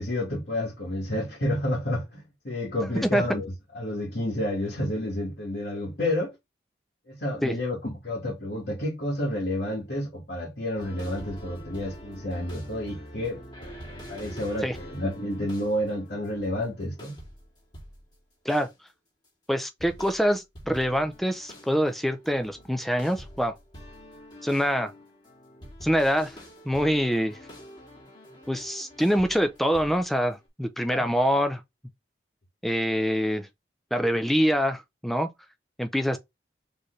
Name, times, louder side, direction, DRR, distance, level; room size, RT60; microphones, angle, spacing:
voice 1, 0.0-6.3 7.1-13.4 14.1-17.1 30.9-31.0, left 1 dB, 60° left, 1.6 m, -30 dB
sound 1, 10.8-18.1 18.5-18.8 19.8-30.3, equal, 25° left, 2.1 m, -46 dB
voice 2, 19.5-23.5 24.4-24.9 25.8-26.4 26.7-27.4 28.5-31.6 32.6-33.5 33.9-35.3 35.8-36.2, equal, ahead, 0.5 m, -25 dB
4.4 x 3.3 x 3.1 m
head